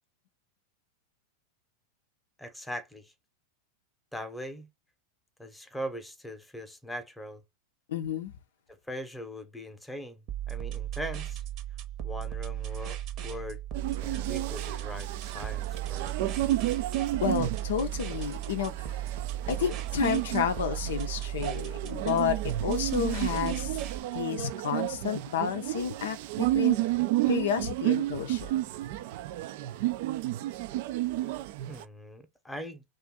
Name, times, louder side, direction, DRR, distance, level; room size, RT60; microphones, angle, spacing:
voice 1, 2.4-3.1 4.1-4.7 5.4-7.4 8.9-11.4 12.0-13.6 14.0-16.3 31.7-32.8, equal, 5° left, 0.8 m, -40 dB
voice 2, 7.9-8.3 17.2-19.0 19.5-23.8 24.1-26.8 27.3-28.6, left 8 dB, 70° left, 0.4 m, -31 dB
sound 1, 10.3-24.0, right 12 dB, 45° right, 0.8 m, -36 dB
sound 2, 13.7-31.8, right 15 dB, 60° right, 0.3 m, -32 dB
2.6 x 2.4 x 3.6 m
hypercardioid pair, 95°, 0 cm